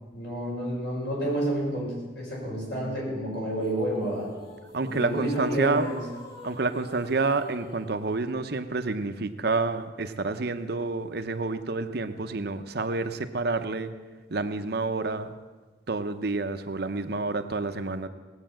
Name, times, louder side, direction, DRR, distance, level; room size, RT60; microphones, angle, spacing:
voice 1, 0.1-4.3 4.9-6.0, right 1 dB, 60° left, -3 dB, 6.1 m, -30 dB
sound 1, 3.6-8.1, left 1 dB, 25° left, 3.5 m, -45 dB
voice 2, 4.7-5.9 6.4-13.9 14.3-15.4 15.9-18.1, right 3 dB, 55° right, 8 dB, 0.7 m, -29 dB
18.5 x 8.1 x 7.6 m, 1.3 s
head